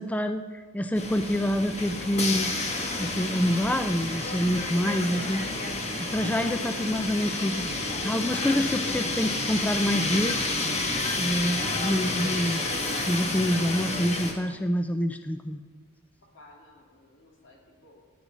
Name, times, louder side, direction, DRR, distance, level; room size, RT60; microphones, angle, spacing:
voice 1, 0.0-2.5 3.0-5.4 6.0-7.7 8.0-12.6 13.1-15.6, equal, 5° left, 8 dB, 0.4 m, -27 dB
sound 1, 1.0-14.3, left 2 dB, 30° left, 1.3 m, -30 dB
voice 2, 16.2-18.2, left 2 dB, 60° left, 0 dB, 2.4 m, -55 dB
17.0 x 9.4 x 4.1 m, 1.5 s
head